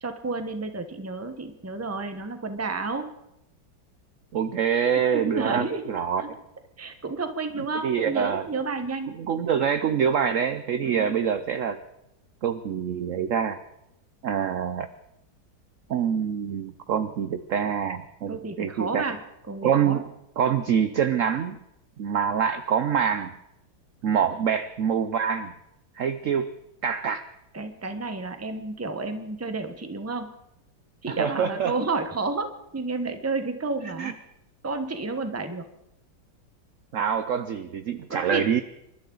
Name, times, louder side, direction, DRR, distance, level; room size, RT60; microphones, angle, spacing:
voice 1, 0.0-3.1 5.1-5.8 6.2-6.3 6.8-9.2 10.8-11.2 18.3-19.2 19.5-20.0 27.5-30.3 31.0-34.1 34.6-35.6 38.1-38.6, right 3 dB, 10° right, 8 dB, 0.8 m, -31 dB
voice 2, 4.3-6.4 7.8-8.4 9.2-11.8 12.4-13.6 14.2-14.9 15.9-19.1 19.6-20.0 20.4-21.6 22.0-23.3 24.0-25.5 26.0-26.5 26.8-27.2 31.1-31.7 34.0-34.1 36.9-38.6, right 7 dB, 70° right, 11 dB, 0.7 m, -25 dB
27.5 x 12.5 x 3.9 m, 0.84 s
omnidirectional pair, 2.1 m